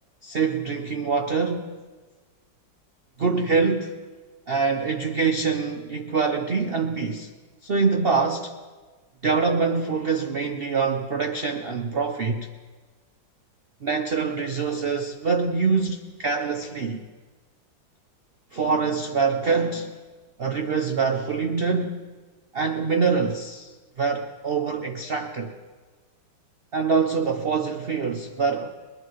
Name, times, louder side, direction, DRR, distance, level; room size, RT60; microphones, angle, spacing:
voice 1, 0.2-1.8 3.2-4.0 4.5-7.3 7.6-8.6 9.2-12.5 13.8-17.0 18.5-19.9 20.4-22.0 22.5-25.6 26.7-28.7, right 5 dB, 40° right, 6 dB, 0.9 m, -25 dB
25.0 x 22.5 x 4.8 m, 1.4 s
omnidirectional pair, 2.0 m